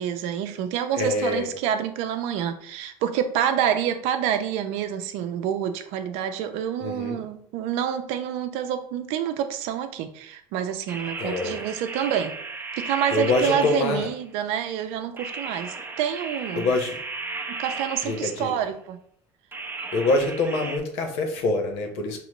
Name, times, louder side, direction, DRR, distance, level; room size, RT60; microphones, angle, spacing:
voice 1, 0.0-12.3 12.8-16.7 17.5-19.0, right 9 dB, 75° right, 7 dB, 0.6 m, -27 dB
voice 2, 0.9-1.5 6.8-7.2 11.2-11.6 13.1-14.1 16.5-17.0 18.0-18.5 19.9-22.2, left 2 dB, 70° left, 4 dB, 1.0 m, -25 dB
sound 1, 10.9-14.3 15.2-18.6 19.5-20.8, right 3 dB, 20° right, 0.7 m, -35 dB
5.0 x 3.0 x 3.0 m, 0.62 s
supercardioid pair, 95°, 11 cm